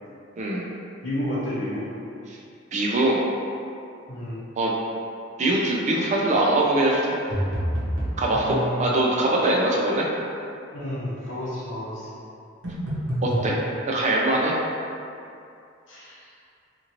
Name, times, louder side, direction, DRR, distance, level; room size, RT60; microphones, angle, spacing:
voice 1, 0.4-0.7 2.3-2.4 2.7-3.2 4.6-4.7 5.4-7.2 8.2-10.1 13.2-13.6 13.8-14.5, right 1 dB, 40° right, -3 dB, 0.4 m, -22 dB
voice 2, 1.0-1.9 4.1-4.4 8.3-8.9 10.7-12.1 15.9-16.3, left 1 dB, 80° left, -8 dB, 0.9 m, -31 dB
sound 1, 7.3-8.2 12.6-13.5, equal, 80° right, 0.9 m, -26 dB
2.9 x 2.5 x 2.8 m, 2.5 s
head